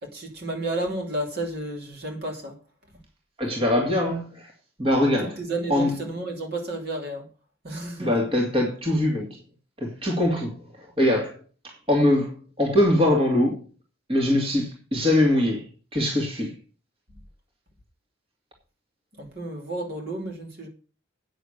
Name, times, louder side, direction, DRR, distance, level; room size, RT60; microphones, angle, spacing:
voice 1, 0.0-2.6 5.2-7.3 7.6-8.1 19.1-20.7, right 2 dB, 50° right, 2.9 m, -32 dB
voice 2, 3.4-4.5 4.8-5.4 5.7-6.0 8.0-9.4 9.8-13.6 14.1-15.6 15.9-16.5, left 1 dB, 25° right, 2.4 m, -23 dB
9.2 x 7.0 x 6.6 m
head